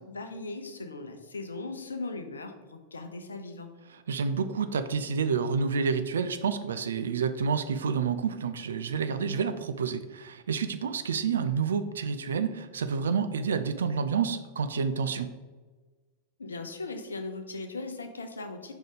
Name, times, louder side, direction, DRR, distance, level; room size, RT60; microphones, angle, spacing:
voice 1, 0.1-3.7 16.4-18.7, left 3 dB, 75° left, 7 dB, 0.7 m, -38 dB
voice 2, 3.9-15.3, right 6 dB, 65° right, 10 dB, 0.3 m, -29 dB
5.1 x 3.8 x 5.0 m, 1.3 s
figure-of-eight pair, 90°, 0 cm